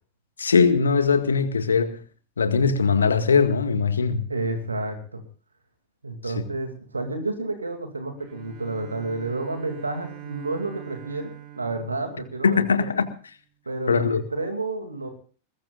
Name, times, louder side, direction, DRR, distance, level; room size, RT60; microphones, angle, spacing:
voice 1, 0.4-2.0 2.4-4.2 12.4-13.0 13.9-14.2, left 5 dB, 70° left, 1.9 m, -20 dB
voice 2, 4.3-5.2 6.0-12.8 13.7-15.1, right 2 dB, 80° right, 2.6 m, -30 dB
Bowed string instrument, 8.2-13.0, right 14 dB, 40° right, 4.0 m, -43 dB
22.0 x 21.0 x 2.5 m
figure-of-eight pair, 90°, 0 cm